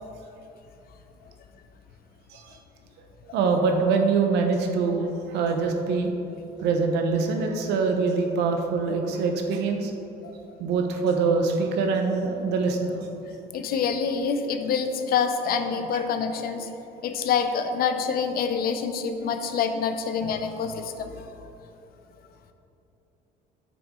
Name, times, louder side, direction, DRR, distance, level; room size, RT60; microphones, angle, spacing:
voice 1, 3.3-6.1 6.6-9.9 10.6-13.1 15.9-16.0, right 4 dB, 85° right, 4 dB, 0.9 m, -24 dB
voice 2, 13.5-16.7 17.0-21.3, left 6 dB, 60° left, 8 dB, 0.6 m, -26 dB
7.8 x 6.2 x 3.7 m, 3.0 s
cardioid pair, 110°, 17 cm